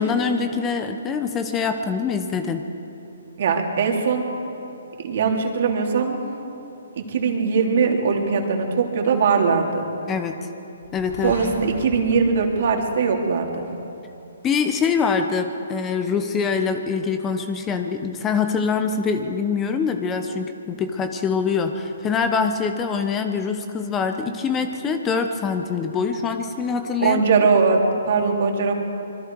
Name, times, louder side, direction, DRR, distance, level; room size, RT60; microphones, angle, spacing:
voice 1, 0.0-2.6 10.1-10.4 10.9-11.6 14.4-27.2, left 5 dB, 15° left, 7 dB, 1.1 m, -24 dB
voice 2, 3.4-4.2 5.0-6.3 7.0-9.8 11.2-13.7 27.0-28.7, right 5 dB, 55° right, 2 dB, 3.2 m, -21 dB
sound 1, 10.8-13.7, left 2 dB, 80° left, 3.5 m, -39 dB
26.0 x 22.5 x 4.8 m, 2.9 s
hypercardioid pair, 145°, 0 cm